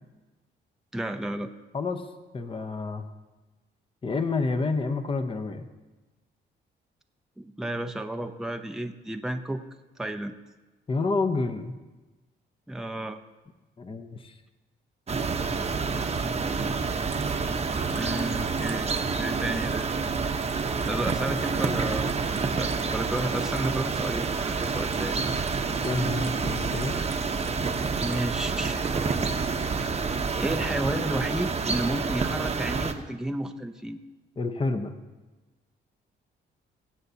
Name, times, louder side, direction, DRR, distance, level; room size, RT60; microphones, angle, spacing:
voice 1, 0.9-1.5 7.4-9.6 10.0-10.3 12.7-13.2 17.9-18.9 19.2-20.0 20.9-22.1 22.4-25.2 28.0-29.0 29.8-34.0, right 1 dB, 5° right, 6 dB, 0.6 m, -32 dB
voice 2, 1.7-2.1 2.3-3.1 4.0-5.7 10.9-11.7 13.8-14.3 25.8-27.0 34.4-34.9, left 3 dB, 25° left, 8 dB, 0.9 m, -29 dB
sound 1, 15.1-32.9, right 4 dB, 30° right, 0.9 m, -28 dB
sound 2, 17.0-28.2, right 6 dB, 65° right, 1.4 m, -46 dB
23.0 x 7.9 x 2.8 m, 1.2 s
cardioid pair, 90°, 20 cm